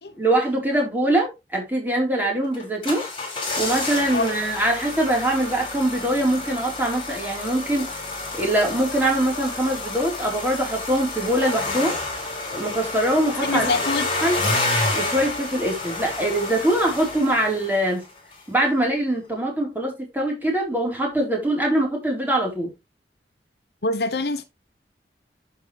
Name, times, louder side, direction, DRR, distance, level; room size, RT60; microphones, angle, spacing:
voice 1, 0.2-3.1 3.6-7.9 8.3-12.0 12.5-13.7 14.0-14.4 14.9-18.0 18.5-22.7, right 1 dB, 10° right, 4.1 m, -23 dB
sound 1, 2.5-18.0 18.3-18.4, left 2 dB, 30° left, 5.3 m, -29 dB
voice 2, 13.4-14.1 23.8-24.4, left 3 dB, 65° left, 1.0 m, -24 dB
11.0 x 5.9 x 3.3 m
head